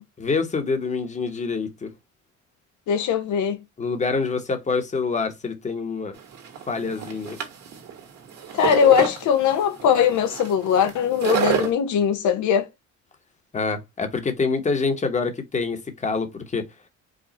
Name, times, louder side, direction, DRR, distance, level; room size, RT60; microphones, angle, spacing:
voice 1, 0.2-1.9 3.8-6.2 6.7-7.4 13.5-16.6, left 4 dB, 20° left, 1.0 m, -26 dB
voice 2, 2.9-3.6 8.5-12.7, left 8 dB, 65° left, 0.7 m, -20 dB
sound 1, 6.1-11.7, right 8 dB, 55° right, 1.7 m, -28 dB
5.0 x 2.4 x 4.1 m
cardioid pair, 120°, 31 cm